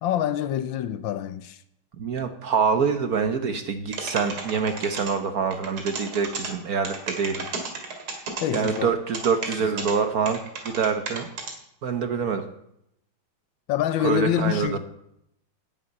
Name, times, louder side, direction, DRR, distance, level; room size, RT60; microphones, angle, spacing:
voice 1, 0.0-1.6 8.4-8.9 9.7-9.9 13.7-14.8, left 11 dB, 75° left, 1.3 m, -26 dB
voice 2, 2.0-7.5 8.5-11.3 11.8-12.5 14.0-14.8, right 6 dB, 55° right, 1.2 m, -25 dB
sound 1, 3.9-5.1 5.5-6.5 6.9-8.8 9.1-9.9 10.3-11.5, right 4 dB, 85° right, 2.9 m, -32 dB
10.5 x 7.1 x 8.7 m
omnidirectional pair, 2.3 m